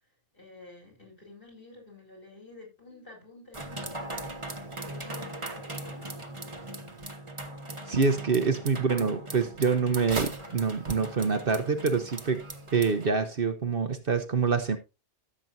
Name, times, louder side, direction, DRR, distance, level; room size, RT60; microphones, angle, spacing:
voice 1, 0.3-6.1, left 2 dB, 45° left, 6.2 m, -50 dB
sound 1, 3.5-13.1, right 2 dB, 25° right, 1.4 m, -39 dB
voice 2, 7.9-12.4 12.7-14.8, right 5 dB, 55° right, 1.1 m, -26 dB
15.0 x 7.5 x 2.6 m
omnidirectional pair, 1.2 m